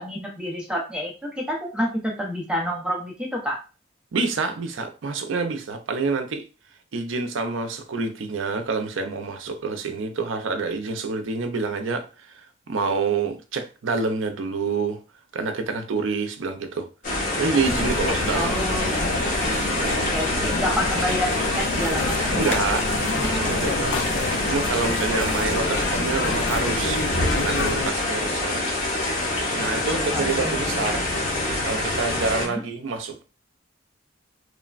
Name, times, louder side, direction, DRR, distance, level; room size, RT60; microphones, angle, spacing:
voice 1, 0.0-3.6 18.3-19.6 19.9-22.5 30.1-30.9 32.4-32.6, equal, 5° right, 0.6 m, -29 dB
voice 2, 4.1-6.4 6.9-12.0 12.7-15.0 15.3-16.9 17.3-18.5 19.8-20.1 22.3-24.0 24.5-27.0 27.3-28.8 29.5-31.1 31.6-33.2, right 4 dB, 70° right, 0.4 m, -27 dB
sound 1, 17.0-32.5, left 2 dB, 40° left, 0.8 m, -26 dB
sound 2, 17.6-27.9, left 2 dB, 65° left, 0.5 m, -29 dB
3.1 x 2.0 x 2.4 m
head